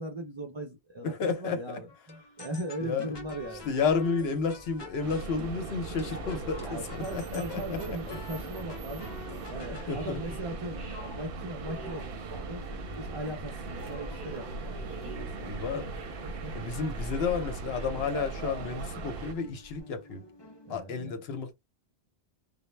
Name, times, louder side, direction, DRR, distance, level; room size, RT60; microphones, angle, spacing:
voice 1, 0.0-3.7 6.6-9.1 9.5-12.6 13.0-15.8 16.2-16.6 20.6-21.3, right 1 dB, 45° right, 0.3 m, -39 dB
voice 2, 1.0-1.6 2.8-3.2 3.7-7.8 8.1-8.2 9.9-10.2 15.4-15.9 16.5-20.2 20.7-21.5, left 5 dB, 70° left, 0.9 m, -31 dB
sound 1, 1.9-11.3 12.0-16.1 16.5-16.8 17.1-20.8, left 2 dB, 40° left, 0.4 m, -49 dB
sound 2, 3.1-19.8, equal, 15° right, 0.9 m, -48 dB
sound 3, 5.0-19.3, right 3 dB, 65° right, 0.7 m, -39 dB
2.0 x 2.0 x 3.1 m
omnidirectional pair, 1.1 m